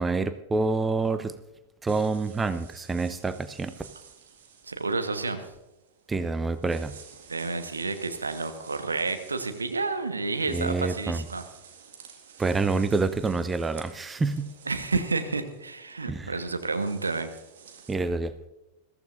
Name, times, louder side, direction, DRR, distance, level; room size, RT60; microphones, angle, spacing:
voice 1, 0.0-1.3 1.8-3.7 6.1-6.9 10.5-11.2 12.4-14.5 16.1-16.3 17.9-18.3, right 3 dB, 15° right, 12 dB, 0.6 m, -27 dB
sound 1, 1.9-18.0, right 7 dB, 60° right, 1.9 m, -52 dB
voice 2, 4.6-5.5 7.3-11.4 14.7-17.3, right 3 dB, 75° right, 7 dB, 1.3 m, -30 dB
21.5 x 14.5 x 2.6 m, 0.95 s
figure-of-eight pair, 90°, 0 cm